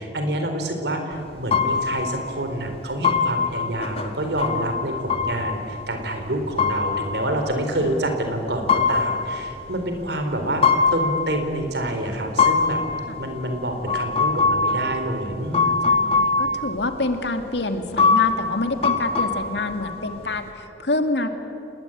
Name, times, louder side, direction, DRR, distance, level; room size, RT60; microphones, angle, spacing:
voice 1, 0.0-10.7 10.9-12.8 13.2-15.8, right 1 dB, 65° right, 5 dB, 4.2 m, -27 dB
sound 1, 1.1-1.2 1.5-2.2 2.6-2.7 3.0-6.2 6.6-8.0 8.5-10.0 10.6-11.6 12.1-16.7 17.0-17.1 17.5-17.6 18.0-20.4, left 4 dB, 35° left, 2.1 m, -23 dB
voice 2, 15.7-21.3, left 2 dB, 70° left, 7 dB, 2.2 m, -27 dB
29.0 x 20.0 x 9.2 m, 2.7 s
head